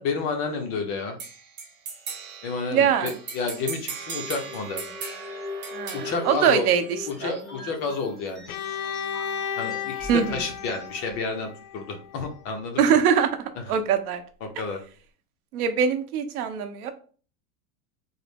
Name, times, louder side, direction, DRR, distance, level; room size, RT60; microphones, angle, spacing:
voice 1, 0.0-1.2 2.4-4.8 5.9-6.7 7.1-8.5 9.6-13.0 14.4-14.8, left 4 dB, 30° left, 4 dB, 0.5 m, -30 dB
sound 1, 1.2-7.2, right 5 dB, 25° right, 0.6 m, -38 dB
voice 2, 2.7-3.1 5.7-6.8 7.2-7.3 10.1-10.4 12.8-13.4 13.7-14.2 15.5-16.9, right 7 dB, 70° right, 9 dB, 0.8 m, -22 dB
sound 2, 4.2-11.3, left 3 dB, ahead, 1.3 m, -41 dB
Bowed string instrument, 8.5-12.3, left 8 dB, 80° left, 0.6 m, -34 dB
3.9 x 2.0 x 3.4 m, 0.40 s
supercardioid pair, 145°, 45 cm